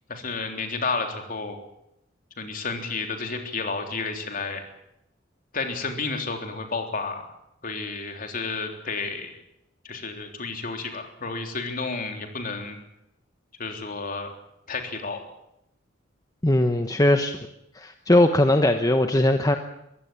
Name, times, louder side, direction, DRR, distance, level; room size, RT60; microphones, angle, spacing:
voice 1, 0.1-1.6 2.4-4.6 5.5-7.2 7.6-9.3 9.8-12.8 13.6-14.3 14.7-15.2, left 4 dB, 45° left, 4 dB, 3.6 m, -31 dB
voice 2, 16.4-17.4 17.7-19.6, left 1 dB, 20° left, 6 dB, 1.1 m, -20 dB
23.5 x 16.0 x 8.7 m, 0.83 s
head